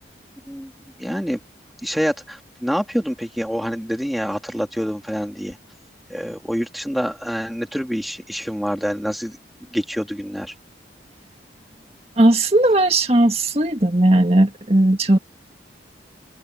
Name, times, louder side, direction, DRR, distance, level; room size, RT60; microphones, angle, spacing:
voice 1, 1.0-1.4 1.8-5.6 6.1-9.4 9.7-10.5, equal, ahead, 3.2 m, -26 dB
voice 2, 12.2-15.2, right 1 dB, 35° right, 2.0 m, -16 dB
open air
head